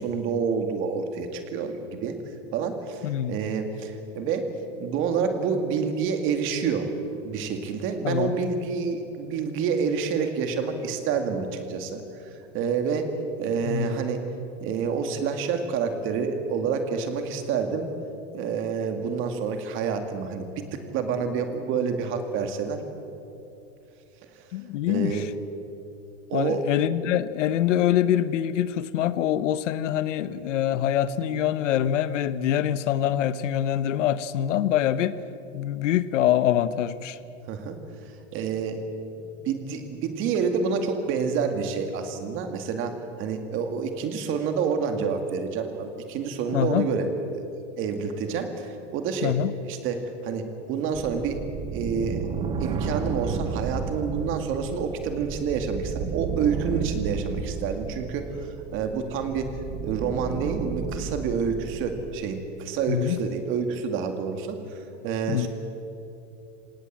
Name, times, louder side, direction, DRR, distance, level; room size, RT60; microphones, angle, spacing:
voice 1, 0.0-2.2 2.5-4.5 4.8-6.9 7.2-12.0 12.5-13.1 13.4-14.2 14.6-17.9 18.3-22.8 24.9-25.3 26.3-26.6 31.3-31.4 37.5-37.8 38.3-38.8 39.5-47.1 47.3-47.4 47.8-49.4 49.7-51.4 51.7-52.3 52.6-58.3 58.7-64.6 65.0-65.5, right 6 dB, 35° right, 6 dB, 2.2 m, -28 dB
voice 2, 3.0-3.4 8.0-8.4 13.6-14.0 24.5-25.3 26.3-35.2 35.5-37.2 46.5-46.9 49.2-49.5 62.9-63.2 65.3-65.5, left 11 dB, 75° left, 15 dB, 1.1 m, -24 dB
sound 1, 50.9-62.2, right 6 dB, 15° right, 0.8 m, -33 dB
25.5 x 18.5 x 7.5 m, 2.8 s
supercardioid pair, 160°, 37 cm